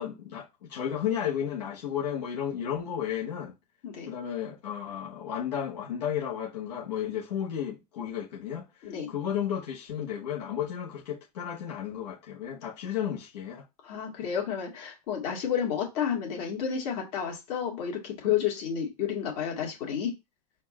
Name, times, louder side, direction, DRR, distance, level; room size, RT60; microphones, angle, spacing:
voice 1, 0.0-3.6 4.1-13.6 14.2-14.3, left 9 dB, 80° left, 1.3 m, -33 dB
voice 2, 3.8-4.1 8.8-9.1 13.8-20.1, left 8 dB, 60° left, 2.1 m, -31 dB
4.3 x 2.5 x 4.2 m
hypercardioid pair, 110°, 21 cm